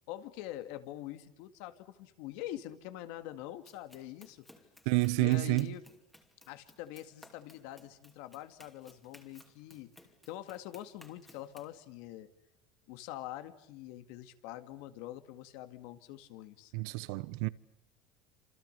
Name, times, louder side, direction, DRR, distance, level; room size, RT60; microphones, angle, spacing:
voice 1, 0.1-4.5 5.2-5.8 6.5-9.9 10.3-12.3 12.9-16.7, left 13 dB, 60° left, 2.1 m, -44 dB
Run, 3.6-11.8, left 1 dB, 5° left, 2.6 m, -60 dB
voice 2, 4.8-5.7 16.7-17.5, right 22 dB, 65° right, 1.1 m, -29 dB
28.5 x 27.5 x 6.9 m
cardioid pair, 170°, 3 cm